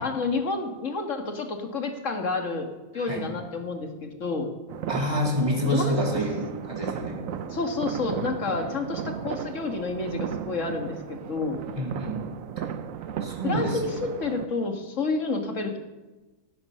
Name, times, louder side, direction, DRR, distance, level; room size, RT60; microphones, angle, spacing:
voice 1, 0.0-2.7 2.9-4.5 5.7-5.9 7.5-11.6 13.4-15.8, left 3 dB, 65° left, 4 dB, 2.1 m, -29 dB
voice 2, 2.9-3.3 4.9-7.2 11.8-12.3 13.2-13.8, left 1 dB, 25° right, -3 dB, 3.8 m, -28 dB
sound 1, 4.7-14.5, right 8 dB, 80° right, 1.1 m, -35 dB
17.0 x 12.0 x 5.6 m, 1.2 s
omnidirectional pair, 1.4 m